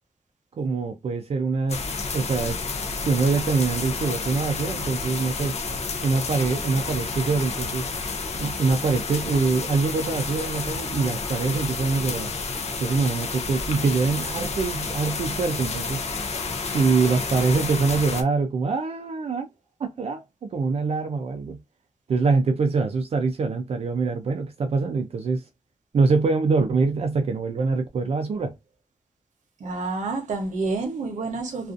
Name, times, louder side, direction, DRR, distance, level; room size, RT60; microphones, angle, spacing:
voice 1, 0.6-1.8 2.1-2.6 3.0-5.6 6.0-7.9 8.4-12.3 12.8-16.1 16.7-19.5 19.8-21.6 22.1-25.4 25.9-28.5, right 4 dB, 55° right, 0.4 m, -24 dB
sound 1, 1.7-18.2, left 4 dB, 60° left, 0.5 m, -30 dB
voice 2, 12.5-12.9 29.6-31.7, right 3 dB, 90° right, 0.8 m, -29 dB
2.5 x 2.4 x 2.4 m
wide cardioid pair, 155°, 12 cm